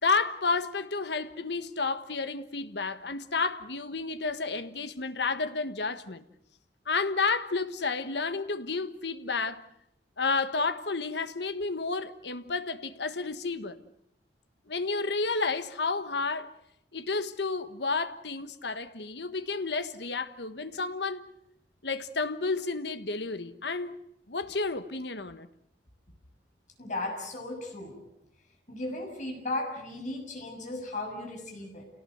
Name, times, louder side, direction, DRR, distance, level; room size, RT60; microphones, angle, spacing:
voice 1, 0.0-6.2 6.9-9.6 10.2-13.8 14.7-16.5 16.9-21.2 21.8-24.0 24.3-25.5, left 4 dB, 75° left, 1.4 m, -31 dB
voice 2, 26.8-28.0 28.7-31.8, left 2 dB, 45° left, 6.8 m, -36 dB
29.0 x 18.0 x 8.0 m
head